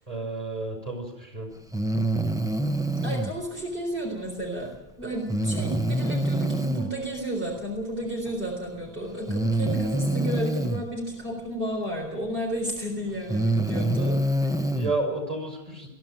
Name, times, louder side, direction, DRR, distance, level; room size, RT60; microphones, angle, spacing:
voice 1, 0.1-1.5 14.7-15.9, right 2 dB, 35° right, 2 dB, 5.9 m, -31 dB
Breathing, 1.7-3.3 5.3-6.9 8.3-8.4 9.3-10.8 12.4-12.5 13.1-14.9, right 1 dB, 5° right, 0.8 m, -25 dB
voice 2, 3.0-4.7 5.0-14.6, right 1 dB, 60° right, -1 dB, 4.3 m, -32 dB
22.0 x 14.5 x 8.9 m, 1.0 s
omnidirectional pair, 1.0 m